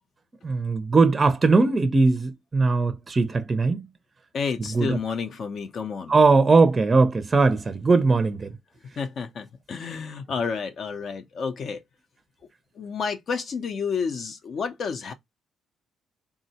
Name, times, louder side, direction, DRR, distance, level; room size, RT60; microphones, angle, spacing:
voice 1, 0.4-3.8 4.7-5.0 6.1-8.5, right 3 dB, 30° right, 0.4 m, -20 dB
voice 2, 4.3-6.2 9.0-11.8 12.8-15.1, left 5 dB, 60° left, 0.4 m, -30 dB
3.6 x 2.0 x 2.7 m
cardioid pair, 90°, 0 cm